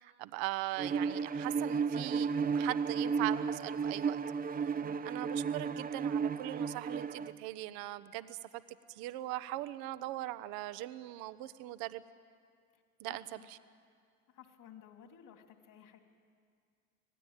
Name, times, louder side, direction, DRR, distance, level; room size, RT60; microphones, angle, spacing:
voice 1, 0.0-4.2 4.6-8.6 8.9-12.0 13.0-13.2, right 16 dB, 55° right, 14 dB, 1.1 m, -40 dB
Bowed string instrument, 0.8-7.3, right 6 dB, 20° right, 0.8 m, -33 dB
voice 2, 3.0-3.4 4.8-5.1 12.7-13.5 14.3-16.0, left 9 dB, 45° left, 5 dB, 3.2 m, -56 dB
26.0 x 18.0 x 9.0 m, 2.2 s
hypercardioid pair, 75°, 43 cm